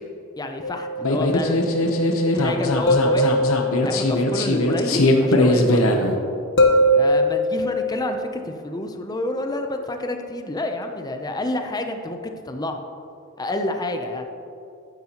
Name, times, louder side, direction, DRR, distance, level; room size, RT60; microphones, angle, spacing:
voice 1, 0.4-1.9 2.3-3.4 3.8-6.0 7.0-12.8 13.4-14.3, left 1 dB, 20° left, 5 dB, 0.6 m, -28 dB
sound 1, 0.6-1.2 2.9-4.0 6.6-7.9, equal, 60° left, 1.1 m, -20 dB
sound 2, 1.0-6.2, left 1 dB, 85° left, 0.9 m, -20 dB
12.0 x 9.4 x 3.0 m, 2.7 s
head